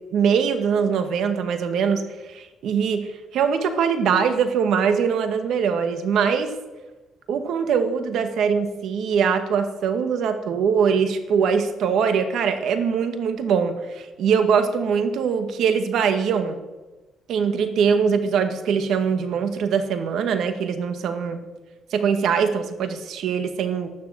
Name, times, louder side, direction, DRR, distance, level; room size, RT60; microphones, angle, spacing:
voice 1, 0.1-2.0 2.3-6.5 7.3-16.6 17.3-21.4 21.9-23.9, right 6 dB, 75° right, 8 dB, 1.9 m, -22 dB
13.0 x 12.0 x 7.7 m, 1.2 s
cardioid pair, 105°, 0 cm